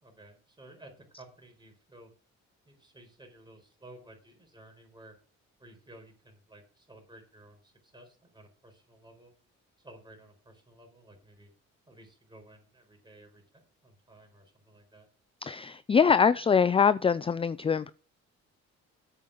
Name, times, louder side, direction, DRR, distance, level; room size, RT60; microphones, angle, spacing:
voice 1, 0.0-2.1 2.6-5.1 5.6-9.3 9.8-11.5 11.9-15.1, right 1 dB, 15° right, 4.5 m, -54 dB
voice 2, 15.4-17.9, left 6 dB, 20° left, 0.4 m, -23 dB
8.5 x 5.7 x 7.7 m
cardioid pair, 90°, 30 cm